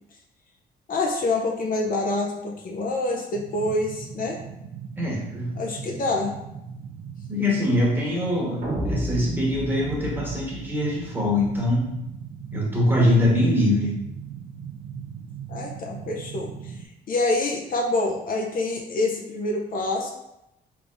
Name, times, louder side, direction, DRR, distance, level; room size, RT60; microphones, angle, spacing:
voice 1, 0.9-4.4 5.6-6.3 15.5-16.8 17.1-20.1, left 2 dB, 55° left, 0 dB, 0.6 m, -26 dB
sound 1, 3.3-16.9, right 7 dB, 70° right, 0.5 m, -39 dB
voice 2, 5.0-5.6 7.3-11.9 12.5-14.0, left 1 dB, 10° right, -4 dB, 1.2 m, -23 dB
sound 2, 8.6-11.7, right 1 dB, 45° right, 1.0 m, -32 dB
3.4 x 3.4 x 2.5 m, 0.88 s
cardioid pair, 105°, 17 cm